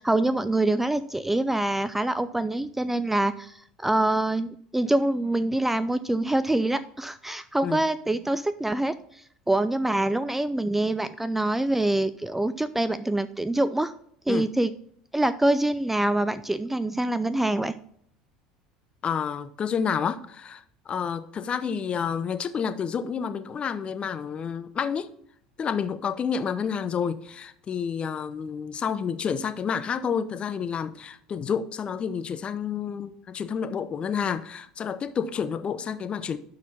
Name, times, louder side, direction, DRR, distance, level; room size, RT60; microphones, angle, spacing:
voice 1, 0.0-13.9 14.3-14.7 15.1-17.7, right 1 dB, 5° right, 0.4 m, -25 dB
voice 2, 19.0-25.1 25.6-36.4, left 7 dB, 30° left, 0.7 m, -29 dB
11.5 x 4.2 x 4.1 m
figure-of-eight pair, 70°, 3 cm